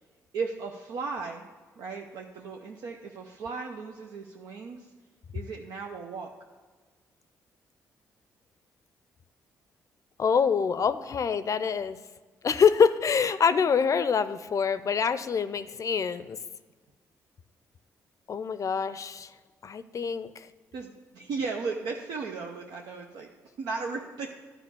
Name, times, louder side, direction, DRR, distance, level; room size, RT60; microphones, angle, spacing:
voice 1, 0.3-1.5 1.8-4.9 5.3-6.3 20.7-23.3 23.6-24.3, right 4 dB, 75° right, 0 dB, 0.7 m, -36 dB
voice 2, 10.2-12.0 12.4-16.4 18.3-19.3 19.6-20.5, left 6 dB, 50° left, 13 dB, 0.5 m, -25 dB
11.0 x 5.0 x 6.9 m, 1.4 s
supercardioid pair, 55°, 7 cm